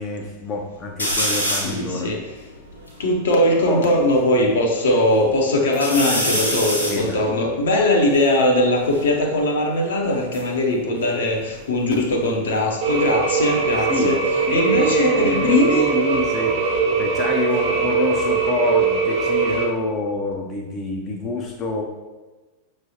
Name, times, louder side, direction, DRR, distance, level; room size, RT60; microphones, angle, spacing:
voice 1, 0.0-2.2 3.7-3.9 6.9-7.3 13.9-14.2 14.5-16.6 17.0-21.8, left 2 dB, 25° left, 1 dB, 0.6 m, -27 dB
sound 1, 1.0-1.8 2.4-2.5 2.7-4.2 4.7-5.3 5.7-9.1 10.0-11.9 12.2-12.7 14.3-16.9 17.3-18.0, equal, 85° left, 1.2 m, -29 dB
voice 2, 1.6-2.2 3.0-14.2 14.5-15.9, left 1 dB, 60° left, 1 dB, 0.8 m, -20 dB
sound 2, 12.8-19.6, right 5 dB, 45° right, 1.1 m, -21 dB
6.0 x 3.2 x 2.7 m, 1.2 s
figure-of-eight pair, 90°, 0 cm